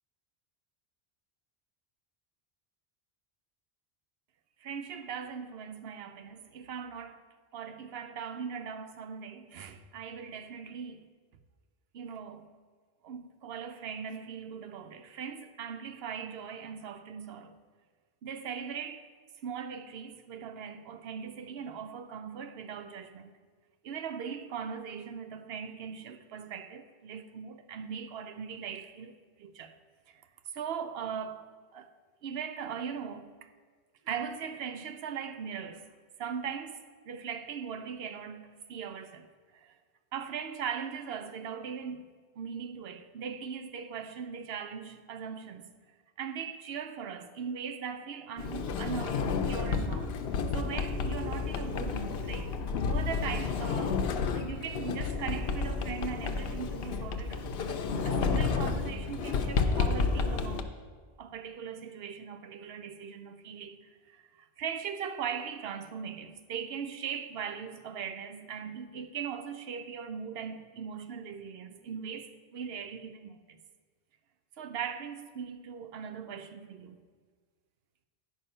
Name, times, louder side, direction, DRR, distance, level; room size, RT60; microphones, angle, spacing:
voice 1, 4.6-7.2 7.5-11.1 11.9-12.5 13.0-17.6 18.2-19.1 19.4-23.3 23.8-29.8 30.1-30.2 30.5-31.9 32.2-33.3 34.0-35.9 36.2-39.3 39.5-39.7 40.1-45.7 46.2-52.6 52.9-57.5 58.0-60.8 61.2-73.6 74.6-77.0, right 7 dB, 75° right, 0.9 m, -40 dB
Sliding door, 48.4-60.6, left 4 dB, 70° left, 0.8 m, -31 dB
9.4 x 5.5 x 5.5 m
omnidirectional pair, 1.1 m